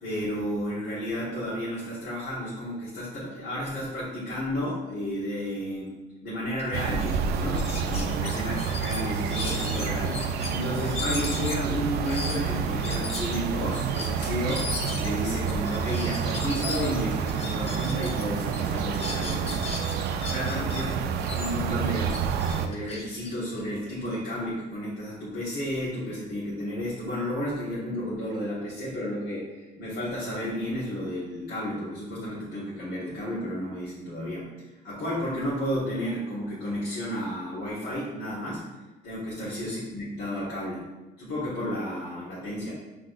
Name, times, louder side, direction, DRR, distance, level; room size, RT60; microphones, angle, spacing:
voice 1, 0.0-5.9 6.2-19.7 20.3-21.0 21.3-22.1 22.5-34.5 34.8-38.6 39.0-40.9 41.2-42.7, equal, 70° left, -10 dB, 1.5 m, -32 dB
sound 1, 6.6-6.7 7.0-7.2 7.5-10.5 10.9-18.2 18.5-20.8 21.2-24.1, left 3 dB, 35° left, 0.7 m, -37 dB
sound 2, 6.7-22.7, right 6 dB, 75° right, 0.4 m, -29 dB
6.0 x 3.3 x 2.5 m, 1.1 s
cardioid pair, 110°, 17 cm